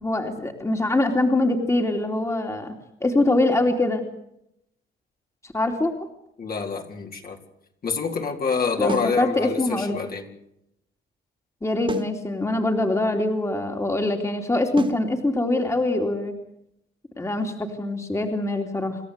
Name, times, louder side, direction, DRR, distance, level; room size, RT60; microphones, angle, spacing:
voice 1, 0.0-2.7 3.0-4.1 5.5-5.9 8.8-10.0 11.6-16.3 17.2-19.0, left 2 dB, 15° left, 4 dB, 3.0 m, -23 dB
voice 2, 6.4-7.4 7.8-10.3, left 5 dB, 50° left, 2 dB, 4.0 m, -27 dB
sound 1, 8.9-9.2 11.9-12.2 14.8-15.1, right 4 dB, 25° right, 2.7 m, -31 dB
28.5 x 13.5 x 8.2 m, 0.79 s
cardioid pair, 90°, 20 cm